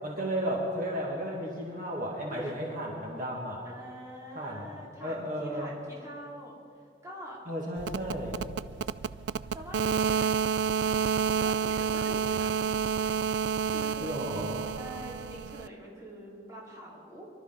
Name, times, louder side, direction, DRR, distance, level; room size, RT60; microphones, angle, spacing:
voice 1, 0.0-3.6 4.4-4.7 5.0-5.7 7.5-8.3 14.0-14.6, equal, 50° right, -3 dB, 2.2 m, -33 dB
voice 2, 3.6-6.6 7.0-7.4 7.8-8.6 9.5-10.3 10.8-12.6 13.6-17.3, equal, 15° right, -5 dB, 3.0 m, -45 dB
sound 1, 7.8-15.7, right 7 dB, 70° right, 0.3 m, -29 dB
24.5 x 12.5 x 4.0 m, 2.3 s
head